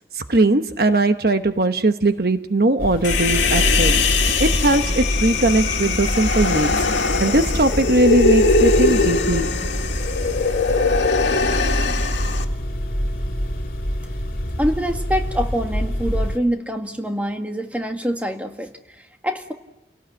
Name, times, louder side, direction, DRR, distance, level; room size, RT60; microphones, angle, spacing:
voice 1, 0.1-4.0 4.4-6.8 7.2-9.5, right 2 dB, 55° right, 8 dB, 1.0 m, -19 dB
sound 1, 2.8-16.4, equal, 50° left, 3.0 m, -25 dB
Human voice, 3.0-12.4, left 3 dB, 85° left, 1.9 m, -21 dB
voice 2, 14.6-19.5, equal, 10° right, 4 dB, 1.8 m, -25 dB
30.0 x 18.0 x 8.6 m, 0.96 s
head